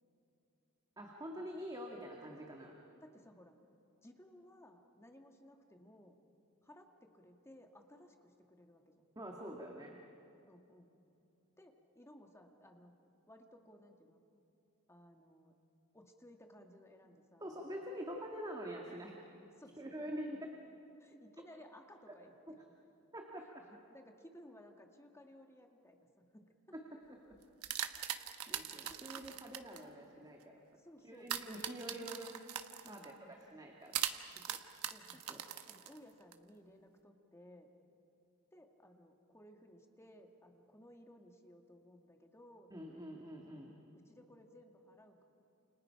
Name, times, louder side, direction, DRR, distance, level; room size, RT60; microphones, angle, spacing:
voice 1, 1.0-2.7 9.2-10.0 17.4-19.2 19.8-20.5 22.5-22.6 23.1-23.6 26.7-26.9 28.5-30.6 31.0-32.4 32.9-33.1 33.5-34.0 34.3-34.4 35.3-35.4 42.7-43.8, equal, 20° right, 0 dB, 2.0 m, -46 dB
voice 2, 3.0-3.6 4.0-6.2 6.6-9.0 10.5-10.9 11.6-13.0 13.3-14.2 14.9-15.5 15.9-17.6 19.6-20.1 21.0-22.3 23.4-23.5 23.9-26.5 28.4-28.6 28.9-29.3 30.8-31.4 32.8-33.4 34.3-34.6 34.9-35.4 35.7-37.7 38.5-43.0 43.9-45.2, left 1 dB, 15° left, 3 dB, 1.8 m, -59 dB
sound 1, 27.3-29.8 31.3-33.1 33.9-36.3, right 10 dB, 85° right, 1.2 m, -41 dB
29.5 x 29.0 x 5.8 m, 2.8 s
head